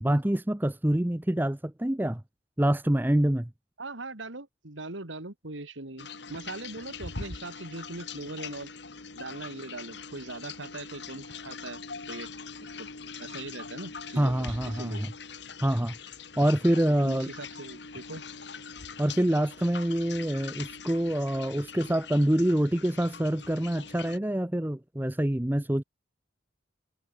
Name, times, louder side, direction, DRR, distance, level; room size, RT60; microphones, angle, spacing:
voice 1, 0.0-2.2 2.6-3.5 14.2-15.1 15.6-15.9 16.4-17.3 19.0-25.8, right 1 dB, 10° right, 0.6 m, -26 dB
voice 2, 3.8-8.7 9.1-11.8 12.1-12.3 12.8-12.9 13.2-15.0 17.0-18.2, right 2 dB, 85° right, 2.6 m, -40 dB
sound 1, 6.0-24.2, left 5 dB, 65° left, 2.1 m, -42 dB
head